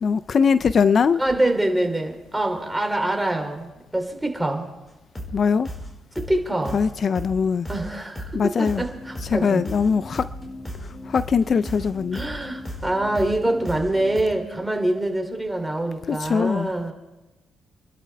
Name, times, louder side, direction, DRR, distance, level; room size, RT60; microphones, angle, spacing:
voice 1, 0.0-1.2 5.3-5.7 6.7-7.7 8.3-8.8 9.3-10.3 10.8-12.2 16.1-16.7, left 6 dB, 50° left, 14 dB, 0.4 m, -21 dB
voice 2, 1.2-4.7 6.2-6.8 7.7-9.6 12.1-16.9, right 1 dB, 10° right, 3 dB, 2.9 m, -25 dB
sound 1, 5.1-5.4 5.6-5.9 6.1-6.4 6.6-6.9 7.1-7.4 7.6-7.9 8.1-8.4 8.6-14.2, equal, 20° left, 4.8 m, -35 dB
27.5 x 12.0 x 3.4 m, 1.1 s
cardioid pair, 90°, 0 cm